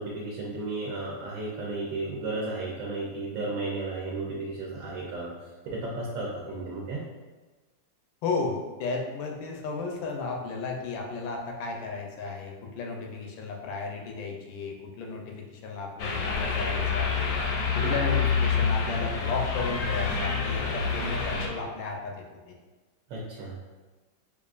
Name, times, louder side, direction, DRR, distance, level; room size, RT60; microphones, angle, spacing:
voice 1, 0.0-5.3 5.7-7.0 17.8-17.9 23.1-23.6, right 2 dB, 80° right, -4 dB, 1.4 m, -33 dB
voice 2, 8.2-17.3 17.7-22.5, left 4 dB, 85° left, 1 dB, 1.4 m, -34 dB
sound 1, 16.0-21.5, left 5 dB, 70° left, 0.9 m, -27 dB
5.0 x 2.4 x 2.4 m, 1.3 s
omnidirectional pair, 2.1 m